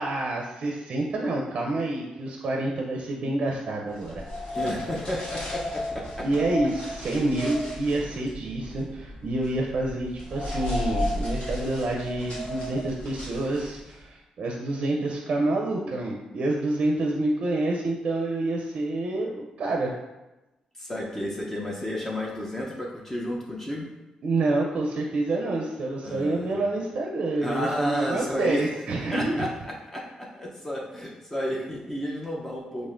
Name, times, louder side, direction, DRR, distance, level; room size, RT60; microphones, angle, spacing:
voice 1, 0.0-4.5 6.2-19.9 24.2-29.4, right 2 dB, 60° right, 0 dB, 0.5 m, -28 dB
sound 1, 4.0-14.0, left 1 dB, 55° left, 1.4 m, -34 dB
voice 2, 4.5-6.3 20.8-23.9 26.0-26.5 27.4-28.7 29.1-29.5 29.9-32.9, equal, 15° left, -3 dB, 0.6 m, -32 dB
4.1 x 3.1 x 2.5 m, 1.0 s
cardioid pair, 85°, 2 cm